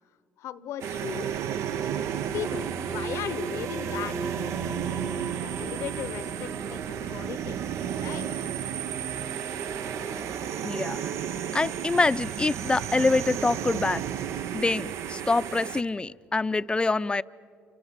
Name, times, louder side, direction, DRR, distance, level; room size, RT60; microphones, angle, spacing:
voice 1, 0.4-1.3 2.3-4.2 4.9-7.6 7.9-8.4, left 11 dB, 70° left, 16 dB, 1.0 m, -37 dB
sound 1, 0.8-15.8, right 9 dB, 70° right, 0.8 m, -33 dB
sound 2, 2.3-10.5, right 5 dB, 45° right, 1.3 m, -36 dB
voice 2, 10.6-11.0 11.5-14.0 14.5-17.2, left 3 dB, 20° left, 16 dB, 0.6 m, -25 dB
29.0 x 27.0 x 7.5 m, 2.3 s
supercardioid pair, 75°, 5 cm